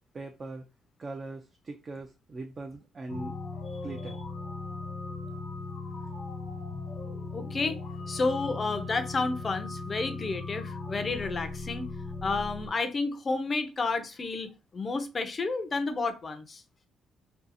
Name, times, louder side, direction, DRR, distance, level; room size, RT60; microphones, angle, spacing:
voice 1, 0.1-0.7 1.0-3.4 3.8-4.2, right 2 dB, 35° right, 0.4 m, -40 dB
sound 1, 3.1-12.7, left 3 dB, 85° left, 0.9 m, -38 dB
voice 2, 7.3-7.8 8.1-11.9 12.2-16.6, left 3 dB, 35° left, 0.5 m, -31 dB
2.7 x 2.3 x 2.5 m
cardioid pair, 90°, 0 cm